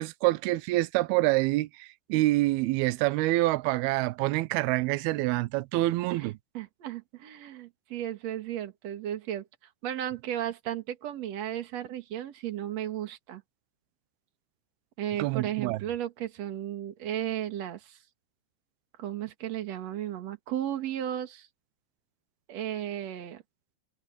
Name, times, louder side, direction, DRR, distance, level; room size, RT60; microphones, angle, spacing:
voice 1, 0.0-6.3 15.2-15.8, right 19 dB, 80° right, 2.3 m, -26 dB
voice 2, 6.5-9.5 9.8-13.4 15.0-18.0 19.0-21.5 22.5-23.4, right 11 dB, 50° right, 2.4 m, -34 dB
omnidirectional pair, 5.3 m